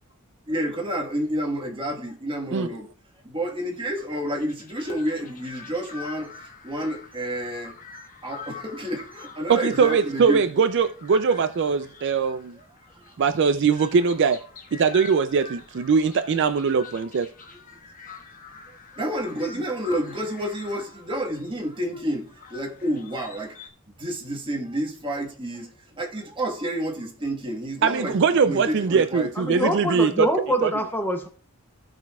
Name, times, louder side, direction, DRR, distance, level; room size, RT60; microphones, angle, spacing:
voice 1, 0.5-2.9 3.2-6.4 6.6-7.7 8.2-10.4 12.6-12.7 12.9-13.2 17.5-17.6 18.7-23.6 24.0-25.7 26.0-28.2 28.4-29.3, right 1 dB, 20° right, 1.4 m, -30 dB
sound 1, 3.7-23.7, left 5 dB, 35° left, 1.2 m, -45 dB
voice 2, 9.5-12.6 13.2-14.4 14.7-17.3 27.8-30.1 30.6-30.7, right 5 dB, 55° right, 0.4 m, -21 dB
voice 3, 29.3-31.3, equal, 10° left, 0.6 m, -25 dB
15.5 x 6.0 x 2.3 m
head